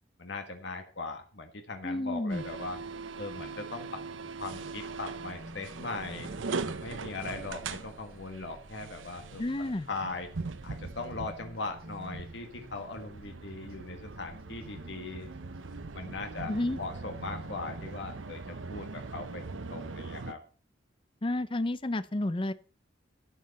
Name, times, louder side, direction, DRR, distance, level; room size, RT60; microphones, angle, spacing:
voice 1, 0.2-2.8 3.2-4.0 4.4-6.3 6.8-10.3 10.6-15.3 15.9-16.5 16.8-20.4, left 3 dB, 70° left, 5 dB, 1.6 m, -39 dB
voice 2, 1.8-2.4 9.4-9.9 16.5-16.8 21.2-22.5, left 1 dB, 25° left, 15 dB, 0.5 m, -31 dB
sound 1, 1.8-17.9, equal, 50° right, 5.5 m, -52 dB
sound 2, 2.3-20.3, right 4 dB, 90° right, 0.8 m, -41 dB
12.5 x 8.0 x 4.2 m, 0.39 s
head